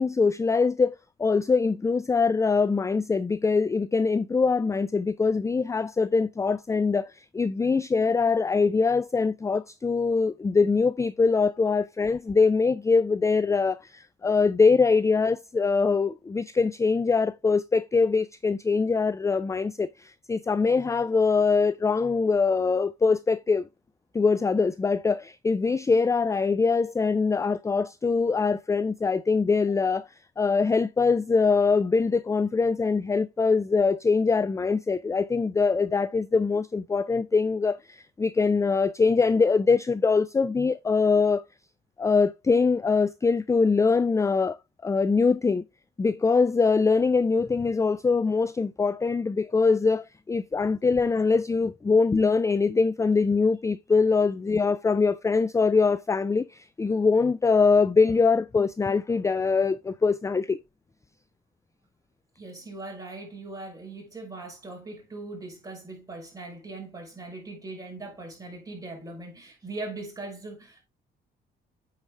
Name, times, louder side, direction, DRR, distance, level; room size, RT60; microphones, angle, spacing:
voice 1, 0.0-23.7 24.1-30.1 30.4-41.4 42.0-44.6 44.8-45.6 46.0-60.6, left 4 dB, 15° left, 0.4 m, -23 dB
voice 2, 62.4-70.8, right 2 dB, 20° right, 5.6 m, -40 dB
9.0 x 4.8 x 3.3 m
cardioid pair, 90°, 20 cm